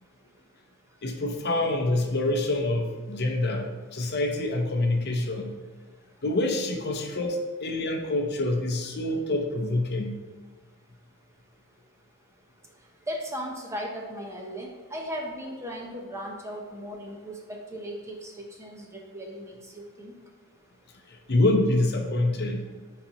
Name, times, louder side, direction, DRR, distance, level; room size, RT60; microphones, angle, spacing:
voice 1, 1.0-5.5 6.2-10.2 21.1-22.7, left 2 dB, 50° left, 2 dB, 0.7 m, -26 dB
voice 2, 13.1-17.3 17.7-18.3 18.6-20.1, equal, 15° right, 0 dB, 0.8 m, -37 dB
9.9 x 4.0 x 3.0 m, 1.4 s
head